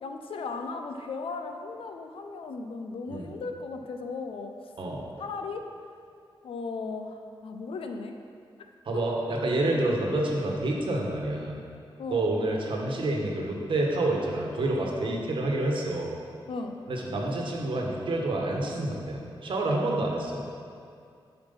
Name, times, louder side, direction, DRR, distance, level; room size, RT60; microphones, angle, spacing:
voice 1, 0.0-4.5 5.2-5.7 6.4-8.1 12.0-12.3 15.1-15.3 16.5-16.8, left 4 dB, 80° left, 5 dB, 0.6 m, -36 dB
voice 2, 8.9-11.6 12.1-16.1 16.9-20.4, right 2 dB, 65° right, -1 dB, 1.2 m, -28 dB
7.6 x 4.4 x 5.7 m, 2.3 s
wide cardioid pair, 110°, 9 cm